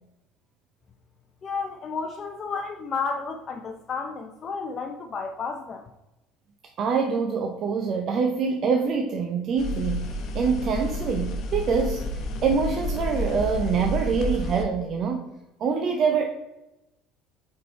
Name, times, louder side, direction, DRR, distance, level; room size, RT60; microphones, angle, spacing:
voice 1, 1.4-5.8, left 5 dB, 35° left, 3 dB, 0.5 m, -32 dB
voice 2, 6.8-12.1 12.4-15.3 15.6-16.3, right 5 dB, 50° right, 4 dB, 0.6 m, -25 dB
sound 1, 9.6-14.6, left 1 dB, 55° left, 0.9 m, -30 dB
5.1 x 4.7 x 4.5 m, 0.96 s
supercardioid pair, 110°, 0 cm